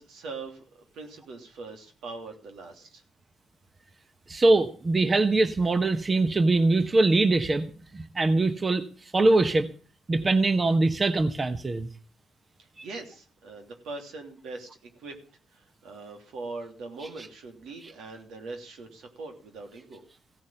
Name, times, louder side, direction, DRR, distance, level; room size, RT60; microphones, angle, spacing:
voice 1, 0.0-3.0 12.6-15.2 15.5-20.0, right 3 dB, 80° right, 4 dB, 3.1 m, -41 dB
voice 2, 4.3-7.7 7.9-8.8 9.1-9.7 10.1-11.9, right 2 dB, 30° right, 9 dB, 1.1 m, -22 dB
16.0 x 6.4 x 9.0 m, 0.42 s
cardioid pair, 90°, 0 cm